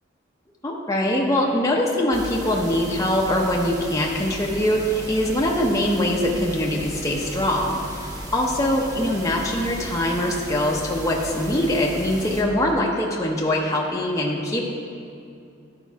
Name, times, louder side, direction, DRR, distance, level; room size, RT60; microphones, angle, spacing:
voice 1, 0.6-14.6, left 1 dB, 15° left, -2 dB, 0.8 m, -23 dB
sound 1, 2.1-12.4, right 1 dB, 20° right, 1.1 m, -36 dB
12.5 x 5.3 x 4.6 m, 2.5 s
head